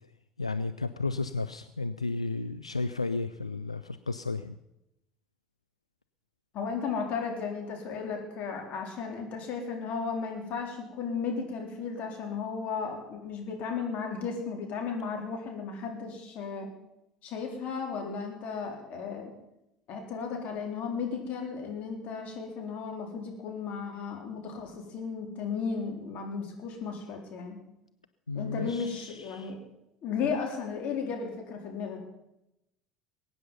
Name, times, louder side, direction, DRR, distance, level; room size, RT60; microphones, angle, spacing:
voice 1, 0.4-4.5 28.3-29.5, left 3 dB, 90° left, 10 dB, 0.4 m, -33 dB
voice 2, 6.5-16.7 17.2-19.3 19.9-27.6 28.3-29.6 30.0-32.0, left 5 dB, 50° left, 2 dB, 4.1 m, -35 dB
21.5 x 9.3 x 5.6 m, 0.88 s
figure-of-eight pair, 65°, 3 cm